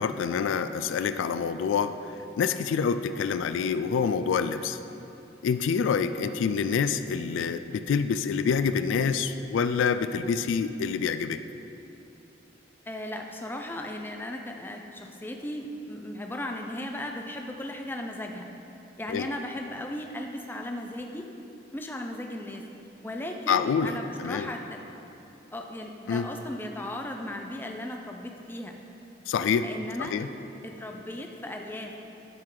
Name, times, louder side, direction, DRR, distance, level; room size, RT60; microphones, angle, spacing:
voice 1, 0.0-2.0 2.4-4.8 5.4-11.4 19.1-19.3 23.5-24.5 26.1-26.3 29.3-29.7 30.0-30.3, left 6 dB, 90° left, 11 dB, 0.3 m, -27 dB
voice 2, 12.9-18.5 19.0-21.3 21.7-22.6 23.0-24.8 25.5-28.8 29.6-30.1 30.6-31.9, left 1 dB, 10° left, 3 dB, 0.4 m, -36 dB
12.0 x 4.7 x 3.8 m, 2.9 s
head